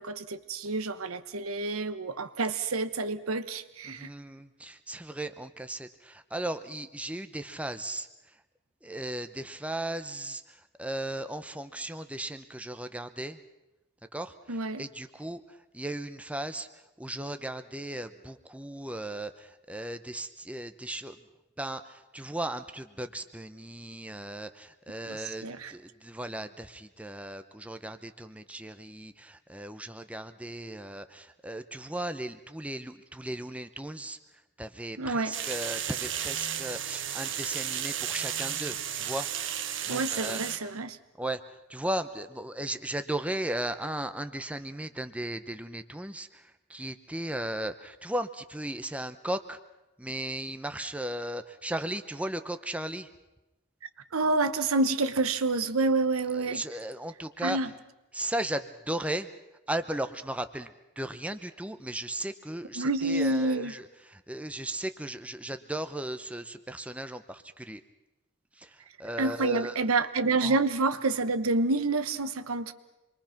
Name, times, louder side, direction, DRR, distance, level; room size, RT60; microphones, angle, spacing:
voice 1, 0.0-4.1 14.5-14.8 25.1-25.2 25.4-25.7 35.0-35.4 39.9-41.0 54.1-56.6 57.4-57.7 62.8-63.7 69.2-72.7, right 3 dB, 85° right, 1.1 m, -28 dB
voice 2, 3.8-8.1 8.8-13.4 14.1-16.7 17.0-21.2 21.6-34.2 34.6-39.3 39.8-40.4 41.2-41.4 41.7-49.6 50.0-53.1 56.3-57.6 58.1-59.3 59.7-60.7 61.0-67.8 68.6-69.8 70.4-70.6, right 1 dB, 5° right, 0.7 m, -36 dB
sound 1, 35.3-40.6, right 9 dB, 60° right, 1.3 m, -33 dB
27.0 x 22.5 x 5.9 m
head